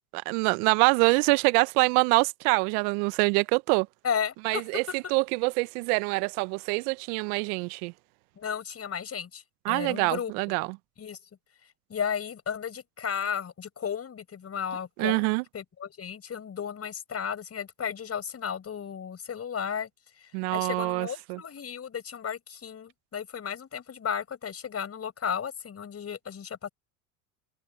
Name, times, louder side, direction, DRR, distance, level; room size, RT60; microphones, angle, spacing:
voice 1, 0.1-3.9 4.4-7.9 9.6-10.7 15.0-15.4 20.3-21.4, right 28 dB, 65° right, 0.9 m, -25 dB
voice 2, 4.0-4.9 8.4-10.3 11.0-11.2 11.9-19.9 20.5-26.7, left 7 dB, 30° left, 5.8 m, -34 dB
hypercardioid pair, 85°, 48 cm